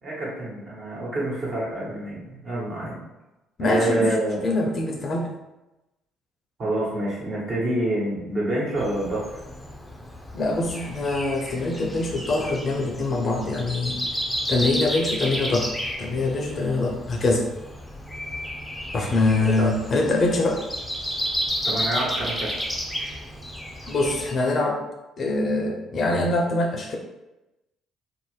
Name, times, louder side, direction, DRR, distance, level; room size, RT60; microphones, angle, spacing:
voice 1, 0.0-3.0 3.6-4.4 6.6-9.3 19.6-19.7 21.6-22.5, right 1 dB, 45° right, -5 dB, 1.2 m, -27 dB
voice 2, 3.6-4.2 4.4-5.3 10.3-14.0 14.5-15.7 16.0-17.5 18.9-20.6 23.8-24.8 25.2-27.0, left 2 dB, 45° left, 1 dB, 0.6 m, -24 dB
Breathing, 8.8-24.3, equal, 5° left, 0.6 m, -32 dB
2.7 x 2.0 x 3.2 m, 0.99 s
hypercardioid pair, 50°, 0 cm